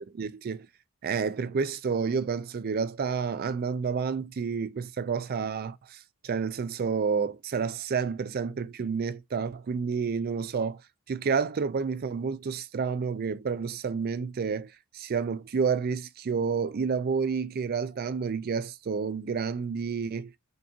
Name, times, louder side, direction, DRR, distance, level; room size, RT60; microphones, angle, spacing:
voice 1, 0.2-0.7 1.0-10.8 11.1-20.3, right 5 dB, 45° right, 0.4 m, -30 dB
5.2 x 2.5 x 2.7 m
head